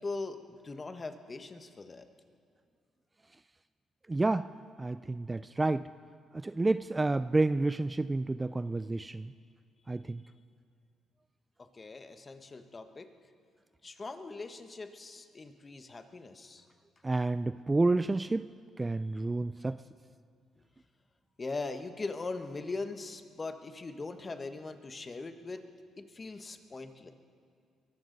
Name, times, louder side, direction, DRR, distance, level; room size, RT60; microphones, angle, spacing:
voice 1, 0.0-2.1 11.6-13.1 13.8-16.7 21.4-25.6 26.0-27.1, left 3 dB, 30° left, 8 dB, 1.1 m, -40 dB
voice 2, 4.1-5.9 6.3-9.3 9.9-10.2 17.0-18.5 18.8-19.8, right 2 dB, 20° right, 14 dB, 0.3 m, -30 dB
22.5 x 14.0 x 4.0 m, 2.3 s
cardioid pair, 90°, 0 cm